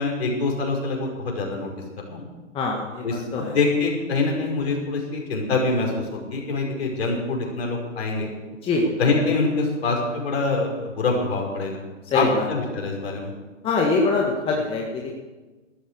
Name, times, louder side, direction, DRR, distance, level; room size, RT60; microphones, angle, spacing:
voice 1, 0.0-1.7 2.1-2.3 3.0-8.3 9.0-11.8 12.1-13.3, left 3 dB, 55° left, 0 dB, 5.8 m, -25 dB
voice 2, 2.5-3.6 8.6-8.8 12.0-12.4 13.6-15.2, left 3 dB, 15° left, -1 dB, 1.7 m, -24 dB
14.0 x 13.0 x 6.8 m, 1.2 s
figure-of-eight pair, 130°, 38 cm